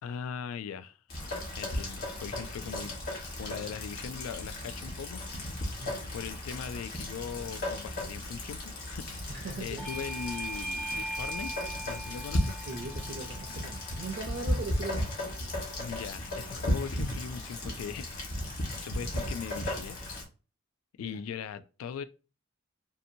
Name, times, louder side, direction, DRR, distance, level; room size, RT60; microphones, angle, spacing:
voice 1, 0.0-1.0 1.6-3.0 3.4-5.2 6.1-9.3 9.6-11.5 11.8-12.7 15.8-18.3 18.7-20.0 21.0-22.0, left 7 dB, 90° left, 0.3 m, -40 dB
Rain, 1.1-20.3, left 1 dB, 50° left, 1.1 m, -35 dB
voice 2, 9.3-9.9 12.6-15.3 21.0-21.2, right 3 dB, 50° right, 0.5 m, -40 dB
Bell / Doorbell, 9.8-15.0, right 1 dB, 5° left, 0.4 m, -40 dB
2.7 x 2.5 x 2.6 m
head